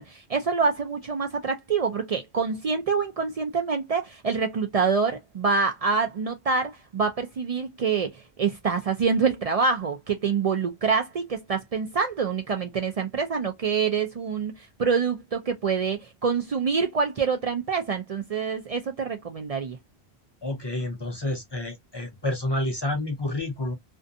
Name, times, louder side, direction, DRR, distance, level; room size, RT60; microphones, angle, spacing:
voice 1, 0.0-19.8, right 5 dB, 60° right, 0.4 m, -26 dB
voice 2, 20.4-23.7, left 1 dB, 35° left, 0.4 m, -29 dB
2.5 x 2.2 x 2.5 m
omnidirectional pair, 1.1 m